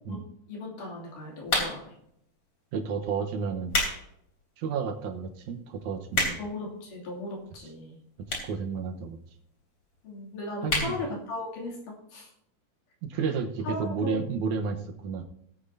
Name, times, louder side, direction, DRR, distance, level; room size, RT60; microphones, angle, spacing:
voice 1, 0.1-1.9 6.4-8.0 10.0-12.3 13.6-14.3, left 2 dB, 85° left, -3 dB, 4.4 m, -37 dB
sound 1, 1.5-2.0 2.7-2.9 3.5-4.0 4.4-4.5 5.1-5.2 5.4-5.5 5.8-6.6 7.4-7.5 8.3-8.6 8.9-9.0 9.2-9.3 9.5-9.6 9.9-10.2 10.6-10.9 11.3-11.4 11.6-11.7, left 2 dB, 40° left, 4.0 m, -28 dB
voice 2, 2.7-3.8 4.6-6.4 8.4-9.2 10.6-10.9 13.0-14.8 15.0-15.2, right 5 dB, 70° right, 4 dB, 2.4 m, -31 dB
19.0 x 8.5 x 2.8 m, 0.73 s
omnidirectional pair, 3.6 m